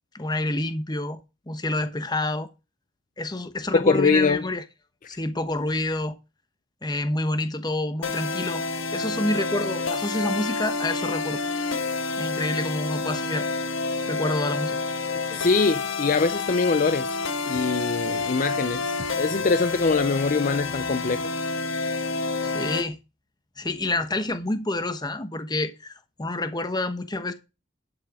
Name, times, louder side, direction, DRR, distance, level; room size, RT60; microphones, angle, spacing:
voice 1, 0.1-1.2 1.5-2.5 3.2-4.6 5.1-6.2 6.8-8.6 8.9-11.4 12.2-13.5 14.1-14.8 22.4-23.0 23.6-27.3, left 2 dB, 20° left, 1.1 m, -28 dB
voice 2, 3.7-4.5 15.3-17.2 17.4-21.3, left 4 dB, 45° left, 0.5 m, -23 dB
sound 1, 8.0-22.9, left 3 dB, 85° left, 1.6 m, -29 dB
11.5 x 6.4 x 4.9 m
head